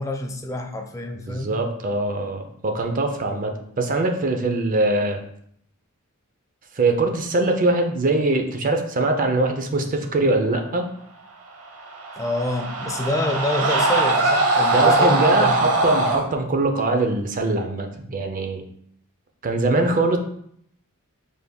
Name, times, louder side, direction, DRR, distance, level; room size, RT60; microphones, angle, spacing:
voice 1, 0.0-1.5 12.2-15.7, left 1 dB, 15° left, 4 dB, 0.4 m, -27 dB
voice 2, 1.3-5.2 6.7-10.9 14.7-18.6 19.4-20.2, right 2 dB, 40° right, 5 dB, 0.5 m, -22 dB
sound 1, 11.8-16.2, right 2 dB, 85° right, 0.8 m, -21 dB
5.1 x 3.4 x 2.2 m, 0.69 s
head